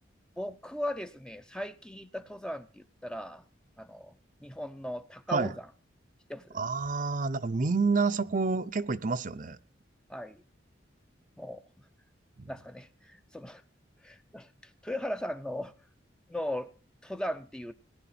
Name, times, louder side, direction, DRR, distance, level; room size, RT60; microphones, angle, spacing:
voice 1, 0.4-3.4 3.8-5.7 6.3-6.6 10.1-10.4 11.4-11.7 12.5-13.6 14.0-15.7 16.3-16.7 17.0-17.7, left 1 dB, 5° left, 0.5 m, -38 dB
voice 2, 6.5-9.6 12.4-12.5, right 4 dB, 40° right, 0.6 m, -28 dB
18.5 x 11.0 x 4.2 m
head